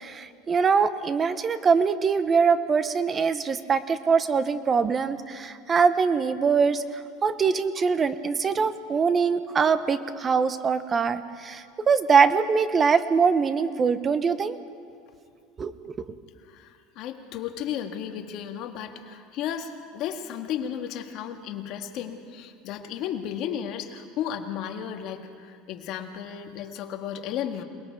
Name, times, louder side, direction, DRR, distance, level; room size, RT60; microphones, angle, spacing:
voice 1, 0.0-6.8 7.2-14.6 15.6-15.7, right 5 dB, 25° right, 13 dB, 0.9 m, -23 dB
voice 2, 16.5-27.6, left 9 dB, 50° left, 5 dB, 1.7 m, -34 dB
27.5 x 20.0 x 4.7 m, 2.4 s
supercardioid pair, 140°, 0 cm